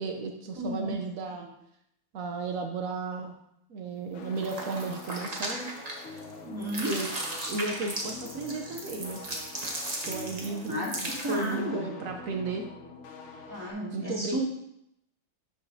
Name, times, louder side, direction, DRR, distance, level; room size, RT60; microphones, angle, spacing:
voice 1, 0.0-1.5 2.1-3.3 3.7-5.7 6.8-7.1 7.4-9.2 10.1-12.7 13.9-14.4, right 3 dB, 85° right, 3 dB, 0.7 m, -34 dB
voice 2, 0.6-1.0 1.4-1.5 6.4-7.0 10.4-10.9 11.2-11.9 13.5-14.4, equal, 10° right, -5 dB, 2.1 m, -33 dB
sound 1, 4.1-13.7, left 4 dB, 90° left, 1.8 m, -45 dB
sound 2, 4.4-6.3 6.6-11.5, right 1 dB, 30° right, 0.7 m, -37 dB
12.0 x 4.9 x 2.7 m, 0.77 s
omnidirectional pair, 2.3 m